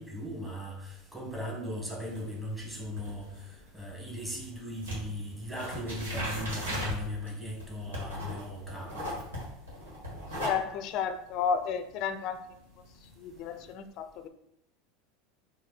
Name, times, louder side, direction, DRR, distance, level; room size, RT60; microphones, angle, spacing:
voice 1, 0.0-3.3 3.7-9.1, left 1 dB, 10° right, -2 dB, 1.6 m, -38 dB
sound 1, 2.0-4.5 4.8-13.7, equal, 90° right, 1.7 m, -38 dB
voice 2, 10.4-12.6 13.0-14.3, left 7 dB, 55° left, 10 dB, 0.4 m, -33 dB
4.2 x 2.7 x 4.0 m, 0.78 s
hypercardioid pair, 90°, 0 cm